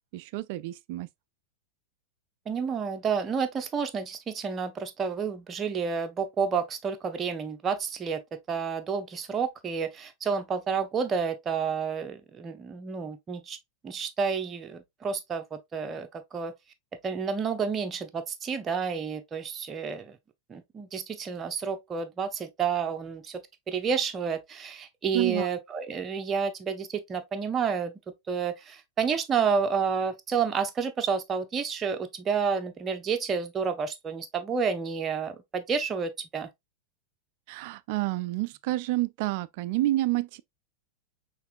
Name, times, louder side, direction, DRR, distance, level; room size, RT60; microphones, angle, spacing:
voice 1, 0.1-1.1 25.1-25.5 37.5-40.4, right 17 dB, 45° right, 0.3 m, -29 dB
voice 2, 2.5-8.2 8.5-13.6 13.8-16.5 17.0-20.2 20.5-23.4 23.7-27.9 28.3-36.5, right 6 dB, 25° right, 0.7 m, -30 dB
5.7 x 3.2 x 2.4 m
figure-of-eight pair, 90°, 0 cm